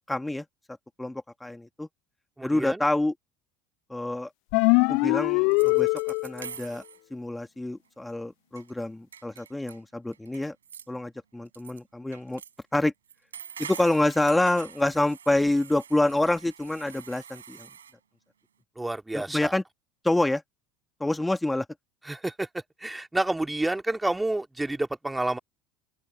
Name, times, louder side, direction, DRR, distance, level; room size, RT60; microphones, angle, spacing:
voice 1, 0.1-0.5 1.0-1.9 2.4-3.1 3.9-4.3 4.9-5.9 6.2-6.8 7.1-10.6 10.9-12.4 12.7-12.9 13.6-17.7 19.1-19.6 20.0-20.4 21.0-21.7, left 1 dB, 10° left, 2.3 m, -27 dB
voice 2, 2.4-2.8 18.8-19.5 22.0-22.5 22.8-25.4, right 2 dB, 10° right, 2.3 m, -29 dB
sound 1, 4.5-6.5, left 33 dB, 60° left, 0.4 m, -22 dB
sound 2, 5.1-5.2 5.5-7.0 8.1-8.2 8.6-8.8 9.1-9.8 10.1-10.9 11.5-11.8 12.1-12.6 13.1-17.9, right 8 dB, 80° right, 6.7 m, -45 dB
figure-of-eight pair, 70°, 0 cm